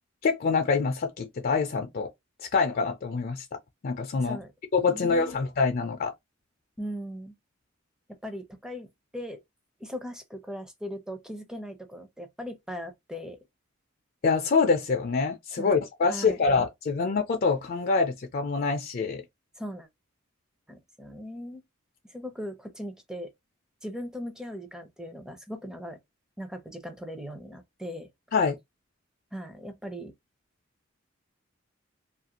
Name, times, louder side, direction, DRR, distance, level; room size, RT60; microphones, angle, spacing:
voice 1, 0.2-2.1 2.4-3.5 3.8-4.4 4.7-6.1 14.2-19.2 28.3-28.6, left 4 dB, 45° left, 0.4 m, -25 dB
voice 2, 4.2-4.5 4.8-5.4 6.8-7.3 8.2-8.9 9.1-9.4 9.8-13.4 15.6-15.8 16.1-16.4 19.6-19.9 20.7-21.6 22.1-23.3 23.8-26.0 26.4-28.1 29.3-30.1, equal, 5° right, 0.5 m, -39 dB
2.7 x 2.5 x 2.8 m
head